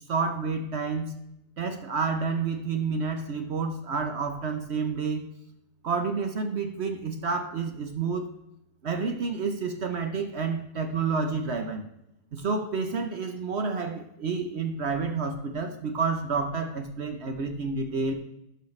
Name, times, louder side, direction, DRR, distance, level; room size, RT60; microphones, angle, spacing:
voice 1, 0.1-1.1 1.6-5.2 5.8-8.3 8.8-11.9 12.3-18.1, right 4 dB, 60° right, 5 dB, 0.7 m, -29 dB
12.0 x 5.6 x 3.2 m, 0.84 s
omnidirectional pair, 2.0 m